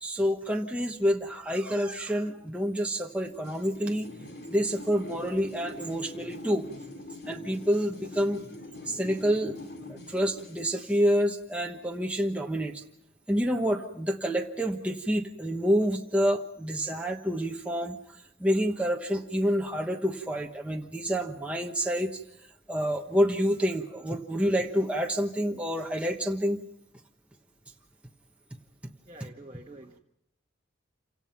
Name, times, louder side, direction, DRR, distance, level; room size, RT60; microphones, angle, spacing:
voice 1, 0.0-4.1 4.5-6.7 7.3-8.4 8.9-9.5 9.9-12.8 13.3-18.0 18.4-22.2 22.7-26.6 29.2-29.3, equal, 5° right, 1 dB, 1.2 m, -28 dB
sound 1, 3.3-10.8, left 2 dB, 50° left, 2.8 m, -44 dB
voice 2, 29.1-30.0, right 1 dB, 25° right, -1 dB, 1.4 m, -47 dB
28.0 x 17.0 x 5.8 m, 0.79 s
head